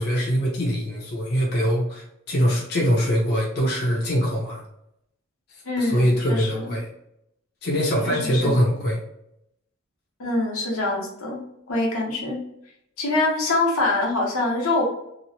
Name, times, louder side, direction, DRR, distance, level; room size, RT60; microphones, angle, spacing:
voice 1, 0.0-4.6 5.5-6.9 7.6-9.0, equal, 50° left, -3 dB, 0.6 m, -23 dB
voice 2, 5.6-6.6 8.0-8.5 10.2-12.4 13.0-14.8, left 2 dB, 80° left, -1 dB, 0.8 m, -24 dB
2.9 x 2.0 x 2.7 m, 0.79 s
head